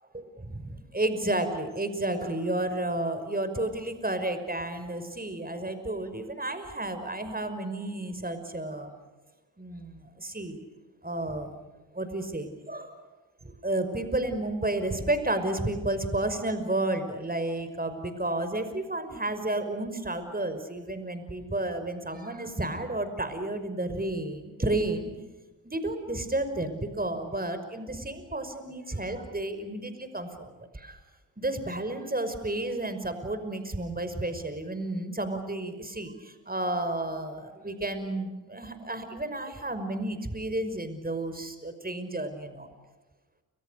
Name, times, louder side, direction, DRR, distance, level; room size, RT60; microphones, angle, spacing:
voice 1, 0.1-8.9 9.6-10.6 11.0-11.5 11.9-13.0 13.4-25.1 25.6-31.0 31.4-42.7, right 1 dB, 20° right, 9 dB, 5.6 m, -32 dB
30.0 x 26.5 x 6.6 m, 1.2 s
supercardioid pair, 40°, 44 cm